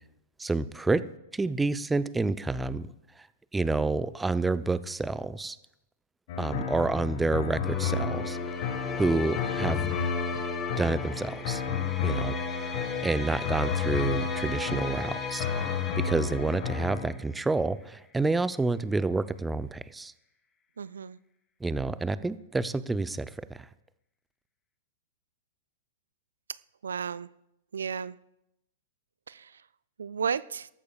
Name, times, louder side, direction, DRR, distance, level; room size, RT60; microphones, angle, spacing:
voice 1, 0.4-1.0 1.3-2.9 3.5-5.6 6.4-8.4 9.0-9.9 10.8-11.6 12.0-12.4 13.0-15.5 16.0-20.1 21.6-23.3, right 3 dB, 10° right, 0.5 m, -28 dB
sound 1, 6.3-17.1, left 6 dB, 50° left, 1.5 m, -32 dB
sound 2, 7.6-17.4, left 5 dB, 20° left, 2.9 m, -36 dB
voice 2, 20.8-21.2 26.8-27.3 27.7-28.2 29.3-29.5 30.0-30.7, right 6 dB, 75° right, 0.4 m, -33 dB
23.0 x 13.5 x 2.4 m
figure-of-eight pair, 105°, 0 cm